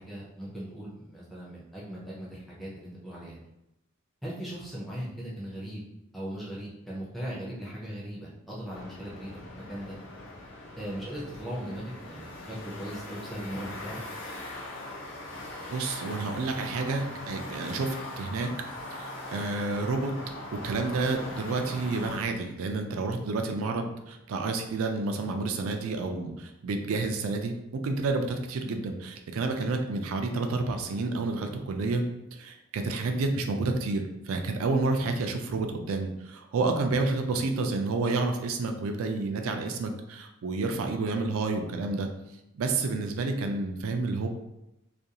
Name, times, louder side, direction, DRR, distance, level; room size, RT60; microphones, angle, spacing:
voice 1, 0.0-3.4 4.2-5.8 6.1-10.0 10.8-14.0, equal, ahead, -7 dB, 0.5 m, -38 dB
sound 1, 8.7-22.2, left 1 dB, 60° left, 0.6 m, -41 dB
voice 2, 15.7-18.5 18.9-32.0 32.3-42.1 42.5-44.3, right 3 dB, 80° right, 5 dB, 0.4 m, -30 dB
2.4 x 2.3 x 2.8 m, 0.89 s
head